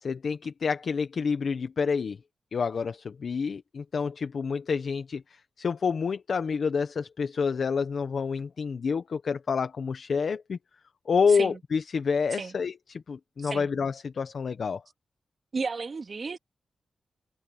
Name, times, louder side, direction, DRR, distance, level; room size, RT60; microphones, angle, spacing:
voice 1, 0.0-2.2 2.5-10.6 11.1-14.8, left 5 dB, 60° left, 0.9 m, -28 dB
voice 2, 15.5-16.4, right 4 dB, 45° right, 2.9 m, -33 dB
wide cardioid pair, 140°, 0 cm